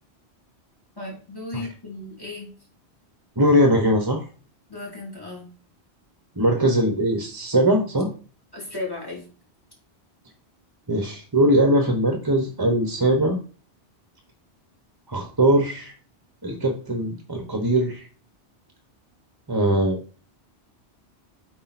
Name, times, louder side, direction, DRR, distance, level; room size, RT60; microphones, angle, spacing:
voice 1, 1.0-2.5 4.7-5.4 8.5-9.2, left 2 dB, 20° left, -1 dB, 3.2 m, -35 dB
voice 2, 3.4-4.2 6.4-8.1 10.9-13.4 15.1-15.9 16.4-18.1 19.5-20.2, right 1 dB, 20° right, 5 dB, 1.0 m, -21 dB
8.4 x 4.7 x 4.2 m, 0.38 s
omnidirectional pair, 1.1 m